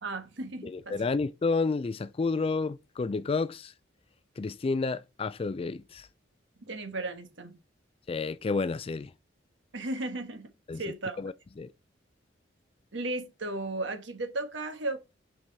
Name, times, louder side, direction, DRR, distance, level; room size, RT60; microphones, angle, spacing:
voice 1, 0.0-1.0 6.6-7.6 9.7-11.2 12.9-15.0, right 2 dB, 70° right, 1.4 m, -35 dB
voice 2, 0.6-3.7 4.4-6.1 8.1-9.1 10.7-10.8 11.2-11.7, left 4 dB, 30° left, 0.3 m, -30 dB
6.7 x 4.6 x 3.6 m
head